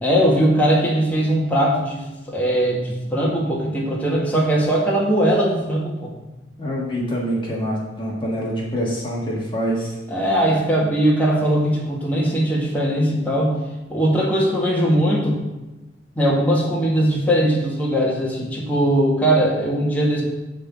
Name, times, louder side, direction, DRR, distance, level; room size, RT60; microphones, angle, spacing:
voice 1, 0.0-6.1 10.1-13.6 13.9-15.4 16.2-20.2, right 1 dB, 10° left, -5 dB, 1.9 m, -20 dB
voice 2, 6.6-10.0, equal, 25° left, -4 dB, 1.7 m, -25 dB
11.5 x 4.0 x 7.4 m, 1.0 s
head